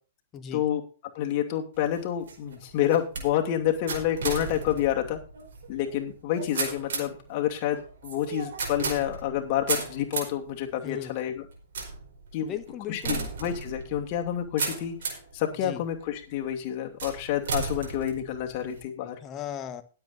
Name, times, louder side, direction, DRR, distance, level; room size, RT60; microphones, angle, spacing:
voice 1, 0.3-0.6 10.8-11.2 12.4-13.3 15.6-15.8 19.2-19.8, left 9 dB, 30° left, 9 dB, 1.4 m, -37 dB
voice 2, 1.1-5.2 5.7-11.4 12.3-12.5 12.9-15.0 15.3-19.2, left 11 dB, 45° left, 2 dB, 2.8 m, -28 dB
sound 1, 1.7-15.4 15.9-16.4 17.0-18.8, right 4 dB, 65° right, 4.6 m, -35 dB
21.0 x 8.0 x 2.7 m, 0.38 s
figure-of-eight pair, 110°, 0 cm